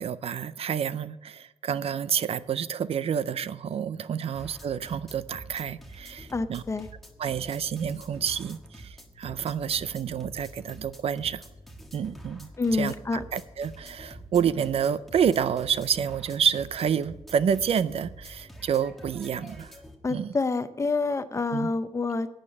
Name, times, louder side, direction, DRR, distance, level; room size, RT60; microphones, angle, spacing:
voice 1, 0.0-6.6 7.2-11.4 11.9-19.7 20.1-20.4 21.5-21.7, right 8 dB, 65° right, 0.4 m, -29 dB
sound 1, 4.3-20.0, right 1 dB, ahead, 1.5 m, -47 dB
voice 2, 6.3-6.9 12.6-13.2 20.0-22.3, left 3 dB, 25° left, 0.6 m, -27 dB
11.0 x 8.9 x 7.2 m
wide cardioid pair, 155°, 11 cm